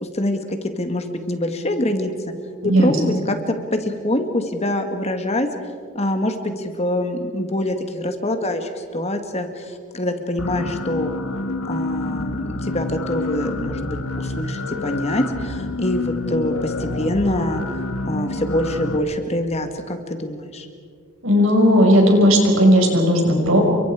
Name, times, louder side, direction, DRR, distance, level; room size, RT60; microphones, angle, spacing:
voice 1, 0.0-2.1 2.6-5.5 5.9-11.1 11.6-20.7, left 1 dB, 30° left, 6 dB, 1.7 m, -25 dB
sound 1, 10.4-19.0, left 2 dB, 75° left, 1.5 m, -27 dB
voice 2, 21.2-23.6, equal, 65° right, 1 dB, 5.9 m, -15 dB
30.0 x 24.0 x 4.9 m, 2.1 s
head